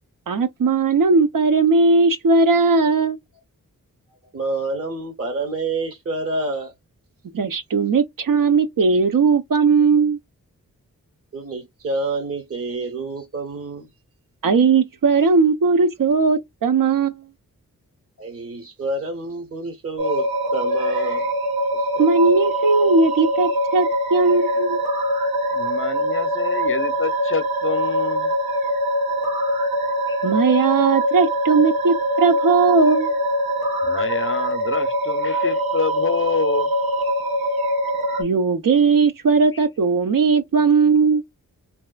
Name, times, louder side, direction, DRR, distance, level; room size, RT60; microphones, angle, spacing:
voice 1, 0.3-3.2 7.3-10.2 14.4-17.2 22.0-24.8 30.2-33.1 38.2-41.2, right 4 dB, 65° right, 0.7 m, -18 dB
voice 2, 4.3-6.7 11.3-13.9 18.2-21.3 21.7-22.1, right 2 dB, 40° right, 0.9 m, -28 dB
sound 1, 20.0-38.2, equal, 90° right, 1.3 m, -23 dB
voice 3, 25.5-28.3 30.1-30.2 30.5-30.7 33.8-36.7, left 5 dB, 35° left, 0.6 m, -27 dB
3.2 x 2.8 x 2.2 m
cardioid pair, 45°, 35 cm